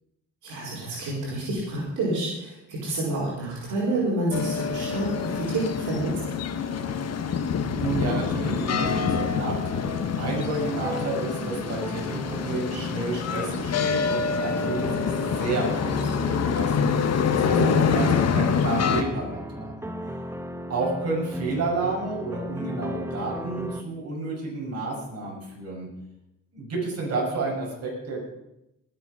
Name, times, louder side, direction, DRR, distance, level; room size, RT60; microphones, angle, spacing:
voice 1, 0.4-6.1 17.5-18.1, right 1 dB, 80° right, -5 dB, 5.2 m, -28 dB
sound 1, 4.3-19.0, left 6 dB, 55° left, 1.5 m, -26 dB
voice 2, 7.7-16.9 17.3-19.8 20.7-25.9 26.5-28.2, right 3 dB, 55° right, -3 dB, 6.6 m, -31 dB
sound 2, 7.8-23.8, equal, 10° right, 1.3 m, -37 dB
19.5 x 8.3 x 5.7 m, 0.89 s
cardioid pair, 90°, 30 cm